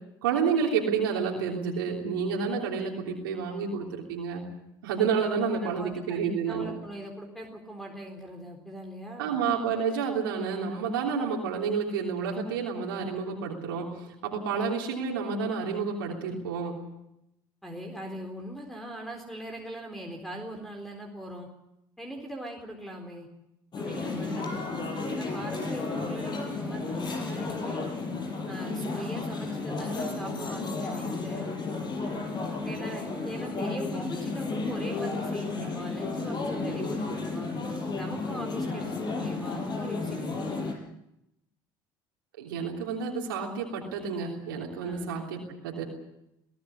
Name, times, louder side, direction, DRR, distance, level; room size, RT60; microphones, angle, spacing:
voice 1, 0.2-4.4 4.8-6.7 9.2-13.9 14.2-16.8 42.4-45.8, right 6 dB, 85° right, -1 dB, 3.2 m, -29 dB
voice 2, 5.5-9.4 17.6-21.5 22.0-23.3 23.8-27.8 28.5-31.5 32.6-37.5 38.0-40.7 44.8-45.1, equal, 5° left, 3 dB, 4.0 m, -41 dB
sound 1, 23.7-40.7, left 3 dB, 40° left, 6.1 m, -33 dB
21.5 x 16.0 x 9.7 m, 0.85 s
hypercardioid pair, 70°, 11 cm